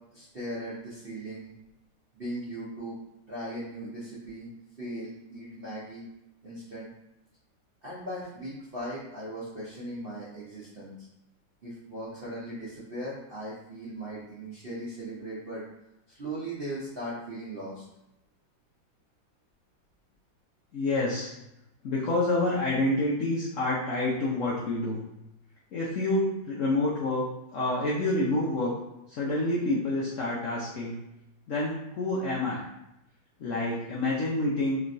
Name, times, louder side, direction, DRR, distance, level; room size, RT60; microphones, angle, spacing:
voice 1, 0.1-1.5 2.1-3.0 3.3-4.5 4.8-6.1 6.4-6.9 7.8-10.9 11.6-15.6 16.1-17.8, right 1 dB, 55° right, -9 dB, 0.6 m, -38 dB
voice 2, 20.7-21.3 21.8-25.0 25.7-27.2 27.5-28.7 29.1-31.0 31.5-32.6 33.4-34.8, left 2 dB, 75° left, -5 dB, 0.7 m, -28 dB
3.2 x 3.0 x 2.6 m, 0.87 s
omnidirectional pair, 2.1 m